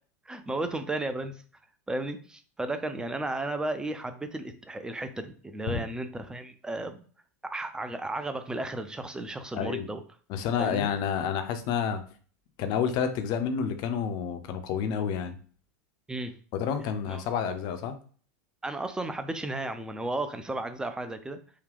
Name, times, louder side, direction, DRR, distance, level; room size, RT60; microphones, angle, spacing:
voice 1, 0.3-1.4 1.9-7.0 7.4-10.0 10.6-10.9 16.1-16.4 17.1-17.2 18.6-21.4, right 2 dB, 10° right, 8 dB, 0.5 m, -34 dB
voice 2, 9.5-9.9 10.3-12.0 12.6-15.4 16.5-18.0, left 7 dB, 50° left, 9 dB, 0.6 m, -29 dB
3.7 x 2.3 x 3.4 m, 0.43 s
hypercardioid pair, 100°, 9 cm